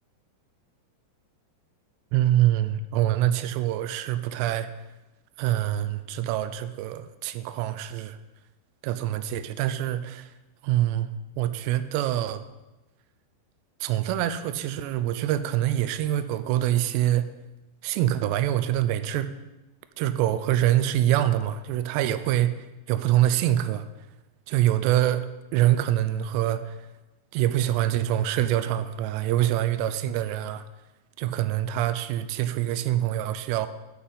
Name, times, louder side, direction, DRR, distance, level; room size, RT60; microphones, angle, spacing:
voice 1, 2.1-4.7 5.4-8.2 8.8-10.3 10.6-11.1 11.4-12.5 13.8-17.3 17.8-19.3 20.0-22.5 22.9-23.9 24.5-26.8 27.3-30.6 31.2-33.7, right 12 dB, 85° right, 12 dB, 2.7 m, -25 dB
8.6 x 5.7 x 8.0 m, 1.0 s
omnidirectional pair, 5.0 m